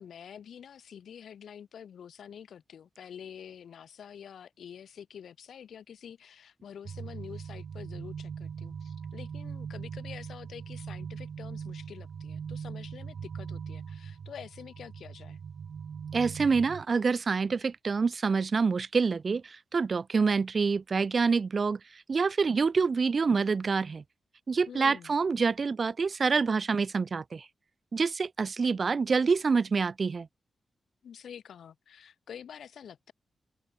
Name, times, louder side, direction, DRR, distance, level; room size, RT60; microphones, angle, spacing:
voice 1, 0.0-15.4 24.7-25.2 31.0-33.1, left 8 dB, 85° left, 2.2 m, -47 dB
sound 1, 6.8-16.8, right 7 dB, 65° right, 1.5 m, -40 dB
voice 2, 16.1-21.8 22.1-24.0 24.5-27.5 27.9-30.3, right 5 dB, 45° right, 0.5 m, -27 dB
open air
wide cardioid pair, 110°, 0 cm